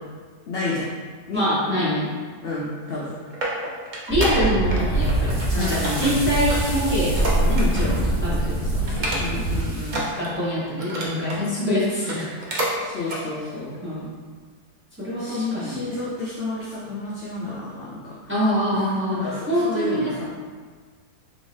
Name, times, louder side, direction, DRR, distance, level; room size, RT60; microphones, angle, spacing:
voice 1, 0.5-0.9 1.3-1.4 2.4-3.1 5.5-6.3 7.7-8.1 9.2-10.1 12.8-13.8 15.2-18.1 18.7-20.3, left 2 dB, 75° left, -5 dB, 0.5 m, -30 dB
voice 2, 1.3-2.1 4.1-9.3 10.1-12.3 13.0-13.1 13.8-14.1 15.0-16.0 18.3-20.2, equal, 10° right, -9 dB, 0.7 m, -25 dB
sound 1, 2.9-4.8 5.1-5.5 5.8-8.0 8.3-8.5 8.9-9.5 9.8-11.4 11.9-12.8 13.0-13.2 13.7-13.8, right 1 dB, 75° right, 0.4 m, -30 dB
sound 2, 4.1-9.6, right 2 dB, 30° left, 1.1 m, -24 dB
sound 3, 4.7-10.1, equal, 40° right, 1.4 m, -38 dB
3.8 x 2.6 x 3.1 m, 1.6 s
omnidirectional pair, 1.6 m